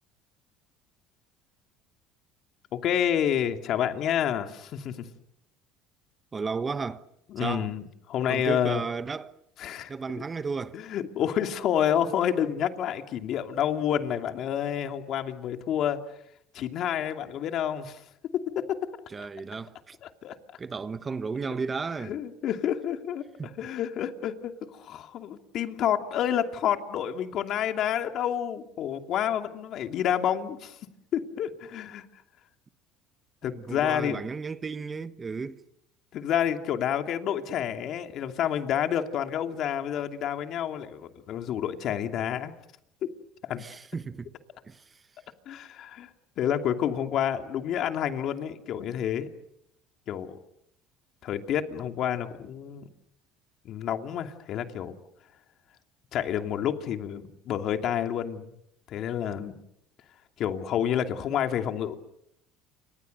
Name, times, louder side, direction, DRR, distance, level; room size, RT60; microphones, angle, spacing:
voice 1, 2.7-5.0 7.3-7.8 8.1-8.8 9.6-9.9 10.7-16.0 16.5-18.0 18.5-18.8 20.0-20.4 22.0-23.2 23.6-30.8 31.1-32.0 33.4-34.2 36.1-42.5 43.0-43.1 43.5-43.6 45.5-46.1 46.4-49.3 50.1-50.4 51.2-52.9 53.6-55.0 56.1-58.5 58.9-59.5 60.4-61.9, left 9 dB, 55° left, 2.7 m, -29 dB
voice 2, 6.3-7.1 7.4-7.7 8.3-9.4 9.9-10.8 19.1-20.0 20.6-22.2 23.4-23.6 33.4-35.6 43.6-44.3 44.7-45.0, right 4 dB, 25° right, 1.2 m, -34 dB
30.0 x 26.0 x 6.7 m
cardioid pair, 120°, 0 cm